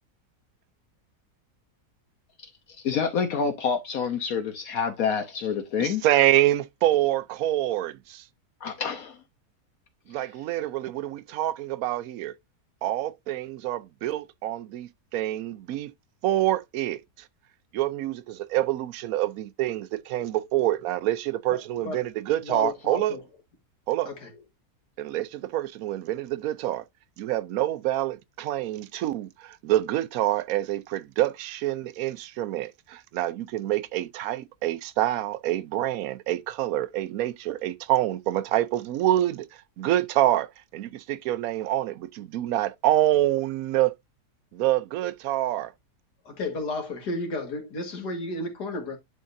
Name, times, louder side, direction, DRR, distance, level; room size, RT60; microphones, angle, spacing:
voice 1, 2.8-6.0 8.6-9.2, left 6 dB, 65° left, 1.3 m, -27 dB
voice 2, 5.8-8.2 10.1-12.3 12.8-15.9 16.2-17.0 17.7-23.2 23.9-24.1 25.0-26.8 27.2-44.0 44.5-45.7, right 14 dB, 70° right, 1.0 m, -26 dB
voice 3, 21.5-22.0 22.4-23.2 24.1-24.3 46.3-49.0, left 2 dB, 85° left, 2.4 m, -33 dB
11.0 x 3.7 x 2.6 m
omnidirectional pair, 1.7 m